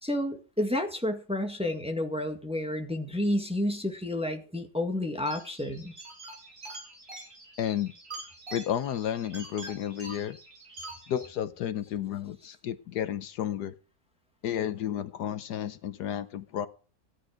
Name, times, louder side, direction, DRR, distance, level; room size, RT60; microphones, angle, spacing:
voice 1, 0.0-5.9, left 1 dB, 5° right, 4 dB, 1.6 m, -30 dB
sound 1, 5.3-11.3, right 2 dB, 60° right, 5.2 m, -45 dB
voice 2, 7.6-7.9 8.5-10.4 11.1-13.7 14.4-16.7, left 10 dB, 75° left, 12 dB, 1.4 m, -32 dB
15.5 x 9.9 x 5.0 m, 0.38 s
omnidirectional pair, 1.8 m